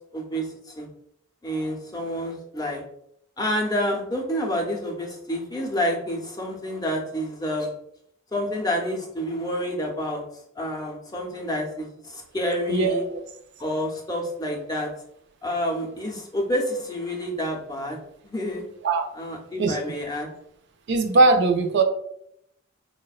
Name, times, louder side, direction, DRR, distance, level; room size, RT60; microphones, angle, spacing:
voice 1, 0.1-0.9 1.4-2.8 3.4-7.7 8.3-10.2 10.5-13.0 13.6-14.9 15.4-18.0 18.2-18.6 19.2-20.3, equal, 20° left, 0 dB, 0.5 m, -28 dB
voice 2, 12.7-13.2 18.8-19.1 19.6-19.8 20.9-21.8, right 3 dB, 55° right, 6 dB, 0.3 m, -20 dB
4.0 x 2.1 x 2.3 m, 0.73 s
head